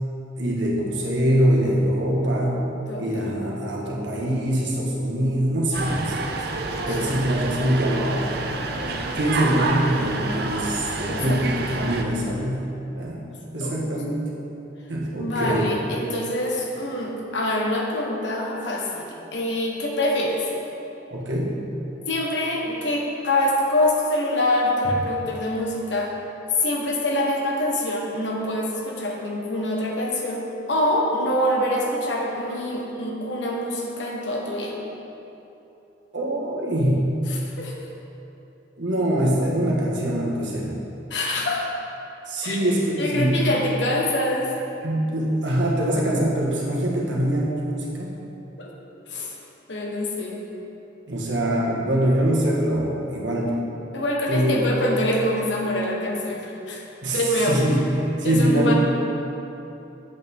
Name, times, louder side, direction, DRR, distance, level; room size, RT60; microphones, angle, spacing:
voice 1, 0.4-2.7 2.9-6.3 6.9-8.2 9.1-13.2 13.5-14.3 14.9-15.7 21.1-21.6 36.1-37.2 38.8-40.7 42.3-43.6 44.8-48.1 51.1-53.6 54.3-54.7 57.0-57.2 57.5-57.8 58.2-58.7, right 1 dB, 75° right, -3 dB, 1.5 m, -23 dB
sound 1, 5.7-12.0, right 3 dB, 55° right, 0.6 m, -28 dB
voice 2, 11.1-11.5 13.3-13.7 15.2-20.4 22.1-26.1 26.5-34.8 37.3-37.7 41.1-41.7 42.4-44.5 48.6-48.7 49.1-49.3 49.7-50.4 53.9-56.8 57.1-57.6 58.2-58.7, left 1 dB, 70° left, -1 dB, 1.3 m, -25 dB
8.3 x 8.0 x 3.7 m, 3.0 s
head